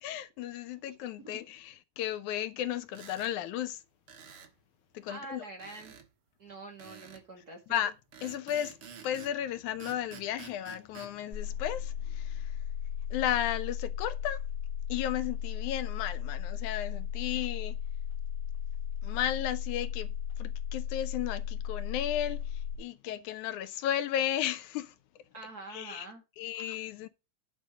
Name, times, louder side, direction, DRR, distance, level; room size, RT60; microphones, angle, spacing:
voice 1, 0.0-3.8 4.9-5.4 7.7-7.9 8.2-8.8 9.0-12.5 13.1-14.4 14.9-17.8 19.0-20.1 20.4-24.9 25.7-26.1 26.4-27.1, left 11 dB, 80° left, 2.1 m, -34 dB
sound 1, 2.9-3.3 4.1-4.5 5.6-6.1 6.8-7.3 8.1-9.4 9.8-11.1, right 7 dB, 50° right, 1.9 m, -49 dB
voice 2, 5.1-5.9 6.4-7.8 25.3-26.2, right 2 dB, 35° right, 2.0 m, -45 dB
sound 2, 11.3-22.8, left 9 dB, 30° left, 2.6 m, -35 dB
9.7 x 5.1 x 6.2 m
omnidirectional pair, 3.5 m